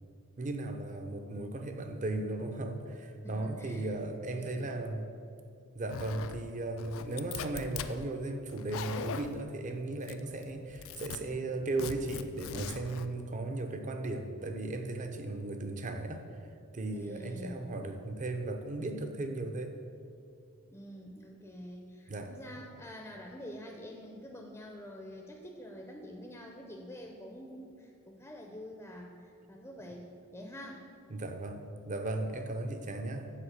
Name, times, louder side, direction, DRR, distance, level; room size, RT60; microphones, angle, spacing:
voice 1, 0.4-5.0 5.7-16.3 16.7-19.8 22.1-22.3 31.1-33.3, right 2 dB, 35° right, 6 dB, 0.6 m, -36 dB
voice 2, 3.2-4.8 16.9-17.8 20.7-30.9, equal, 10° left, 1 dB, 0.5 m, -47 dB
Zipper (clothing), 5.9-6.4 6.8-7.9 8.5-9.4 10.0-10.4 10.7-11.2 11.8-13.0, left 7 dB, 65° left, 0.4 m, -40 dB
7.5 x 4.0 x 6.5 m, 2.4 s
head